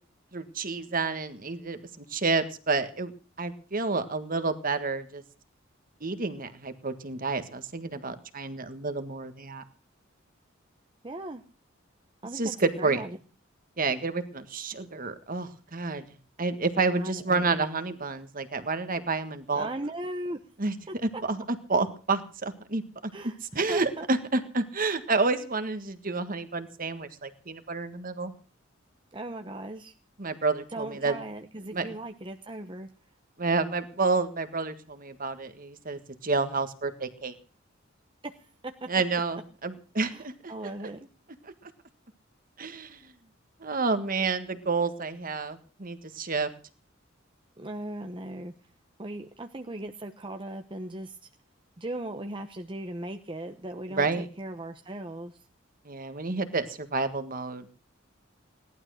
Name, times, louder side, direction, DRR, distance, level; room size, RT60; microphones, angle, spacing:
voice 1, 0.3-3.1 3.4-5.2 6.0-9.6 12.3-13.0 13.8-16.0 16.4-19.7 20.6-20.7 21.3-21.4 21.7-23.1 23.5-28.3 30.2-31.2 31.7-31.8 33.4-37.3 38.9-40.3 42.6-43.0 43.6-46.5 53.9-54.2 55.8-57.7, right 3 dB, 45° right, 10 dB, 1.7 m, -29 dB
voice 2, 11.0-11.4 12.2-13.2 16.9-17.6 19.5-20.4 20.9-21.2 23.1-23.4 23.7-24.1 29.1-29.9 30.7-32.9 38.2-38.7 40.1-41.1 47.6-48.5 49.0-51.3 51.8-55.4, right 1 dB, 25° right, 5 dB, 1.0 m, -38 dB
18.0 x 12.0 x 6.4 m, 0.39 s
head